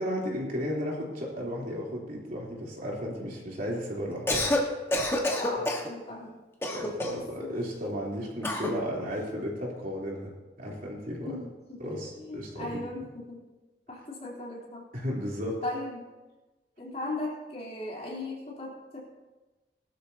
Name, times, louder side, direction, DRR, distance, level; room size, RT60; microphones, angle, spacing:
voice 1, 0.0-4.5 6.7-11.4 11.8-12.8 14.9-15.6, equal, 50° right, -4 dB, 3.5 m, -34 dB
Cough, 4.1-4.6 4.9-5.9 6.6-7.3 8.4-8.8, left 1 dB, 15° left, 1.5 m, -28 dB
voice 2, 5.4-6.3 7.1-7.6 11.2-13.4 13.9-14.9 15.6-16.0 16.8-19.0, left 2 dB, 40° left, -4 dB, 3.6 m, -38 dB
19.5 x 12.5 x 2.9 m, 1.2 s
head